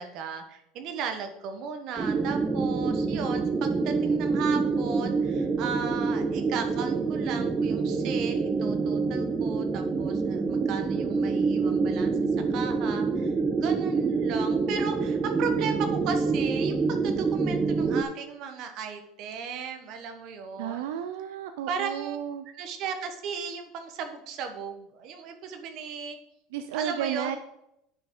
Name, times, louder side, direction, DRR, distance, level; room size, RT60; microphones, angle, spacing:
voice 1, 0.0-12.1 12.5-20.9 21.7-22.2 22.5-26.2 26.7-27.4, right 6 dB, 50° right, 6 dB, 1.2 m, -36 dB
sound 1, 2.0-18.0, right 4 dB, 20° right, 0.5 m, -26 dB
voice 2, 20.6-22.4 26.5-27.4, right 9 dB, 85° right, 9 dB, 0.5 m, -32 dB
9.4 x 5.0 x 3.8 m, 0.80 s
supercardioid pair, 140°, 0 cm